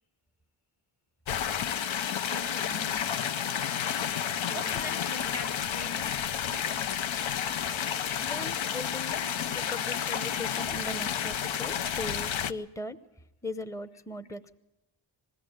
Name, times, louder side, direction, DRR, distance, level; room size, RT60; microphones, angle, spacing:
sound 1, 1.3-12.5, left 9 dB, 80° left, 0.8 m, -31 dB
voice 1, 2.3-6.2 6.5-6.7 9.2-9.7, left 1 dB, 35° left, 1.5 m, -44 dB
voice 2, 8.2-9.2 9.5-13.0 13.4-14.6, left 2 dB, 5° left, 0.7 m, -39 dB
21.0 x 16.0 x 8.8 m
wide cardioid pair, 125°, 46 cm